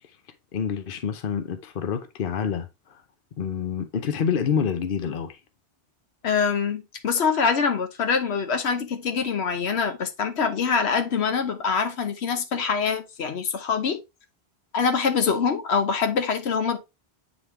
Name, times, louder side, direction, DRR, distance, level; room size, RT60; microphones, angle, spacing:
voice 1, 0.5-3.0 3.4-5.4, left 7 dB, 60° left, 0.9 m, -27 dB
voice 2, 6.2-14.0 14.7-16.8, left 6 dB, 90° left, 1.2 m, -24 dB
9.4 x 3.4 x 3.1 m
omnidirectional pair, 1.1 m